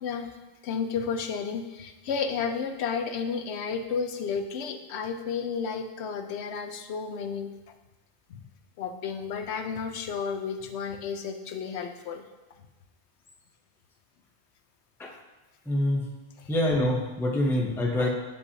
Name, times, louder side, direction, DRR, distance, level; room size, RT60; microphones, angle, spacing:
voice 1, 0.6-7.5 8.3-8.4 8.8-12.3, left 6 dB, 85° left, 7 dB, 0.9 m, -32 dB
voice 2, 15.7-16.1 16.5-18.1, left 1 dB, 5° left, 0 dB, 0.5 m, -25 dB
8.1 x 5.5 x 2.7 m, 1.1 s
omnidirectional pair, 1.1 m